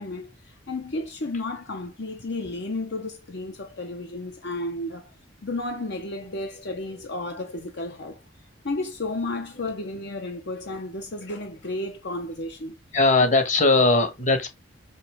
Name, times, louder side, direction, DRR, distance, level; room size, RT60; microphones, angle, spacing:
voice 1, 0.0-5.1 5.4-12.8, left 2 dB, 60° left, 0.9 m, -33 dB
voice 2, 12.9-14.5, left 3 dB, 40° left, 1.5 m, -19 dB
5.7 x 5.7 x 3.6 m
head